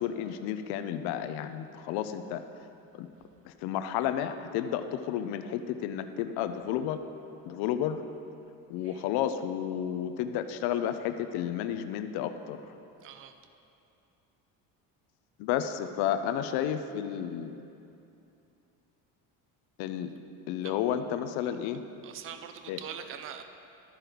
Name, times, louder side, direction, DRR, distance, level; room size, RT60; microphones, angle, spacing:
voice 1, 0.0-2.4 3.0-3.1 3.5-7.0 7.5-8.0 8.7-12.6 15.4-17.6 19.8-20.1 20.5-21.8 22.7-22.8, left 10 dB, 85° left, 9 dB, 0.6 m, -31 dB
voice 2, 13.0-13.3 20.6-20.7 22.0-23.4, right 8 dB, 35° right, 8 dB, 0.5 m, -42 dB
13.0 x 4.6 x 5.0 m, 2.7 s
cardioid pair, 150°, 37 cm